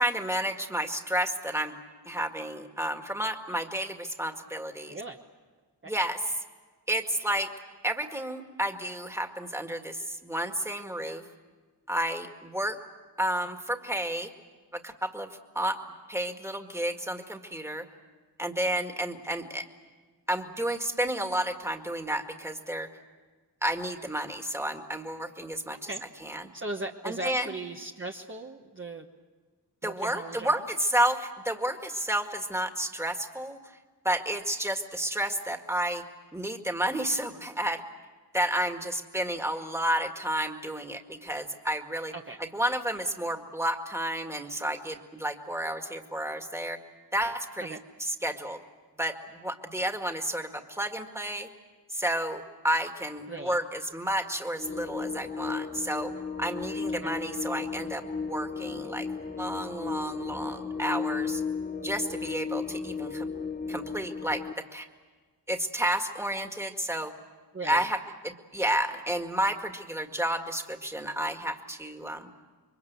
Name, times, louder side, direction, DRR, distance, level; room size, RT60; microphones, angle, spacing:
voice 1, 0.0-1.8 2.1-5.0 5.8-6.2 6.9-7.5 7.8-11.2 11.9-12.8 13.2-14.3 14.7-15.3 15.5-15.8 16.1-17.9 18.4-19.7 20.3-22.9 23.6-25.9 26.2-26.5 27.0-27.5 29.8-33.8 34.0-36.0 36.3-37.8 38.3-42.1 42.4-46.8 47.1-48.6 49.0-51.5 51.9-56.1 56.4-59.1 59.4-61.4 61.8-63.3 63.7-64.4 64.7-64.9 65.5-67.1 67.6-68.0 68.2-72.3, right 1 dB, 5° right, 5 dB, 2.0 m, -31 dB
voice 2, 26.5-29.1 29.8-30.6 42.1-42.4 47.6-47.8 53.3-53.6 56.9-57.1 67.5-67.9, right 2 dB, 30° right, 1 dB, 1.2 m, -38 dB
sound 1, 54.6-64.5, left 5 dB, 25° left, 0.7 m, -34 dB
27.5 x 23.5 x 8.2 m, 1.4 s
wide cardioid pair, 95°, 41 cm